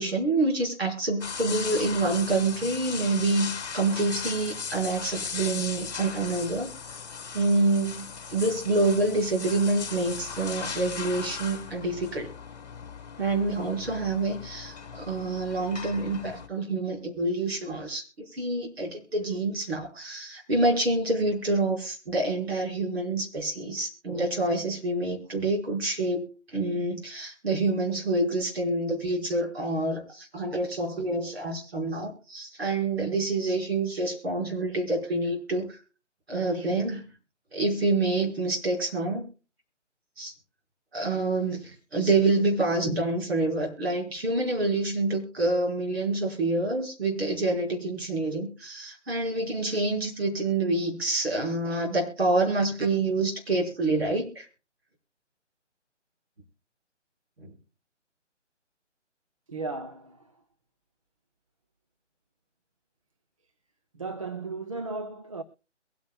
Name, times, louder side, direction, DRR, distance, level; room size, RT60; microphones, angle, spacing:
voice 1, 0.0-6.7 7.3-12.3 13.2-35.8 36.3-37.0 37.5-39.3 40.2-40.3 40.9-54.5 57.4-57.5, right 2 dB, 55° right, 5.5 m, -27 dB
sound 1, 1.2-16.5, left 6 dB, 35° left, 1.9 m, -38 dB
voice 2, 59.5-60.3 63.9-65.4, right 3 dB, 30° right, 0.6 m, -35 dB
22.5 x 9.5 x 2.3 m
figure-of-eight pair, 150°, 37 cm